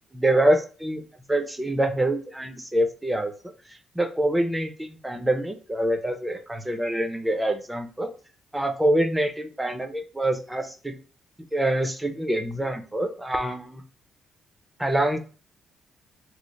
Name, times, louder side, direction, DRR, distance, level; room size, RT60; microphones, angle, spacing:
voice 1, 0.1-1.0 1.3-3.3 4.0-8.1 8.5-10.9 11.5-13.8 14.8-15.2, right 1 dB, 10° right, 5 dB, 0.6 m, -25 dB
3.1 x 2.0 x 3.8 m, 0.38 s
cardioid pair, 90°, 0 cm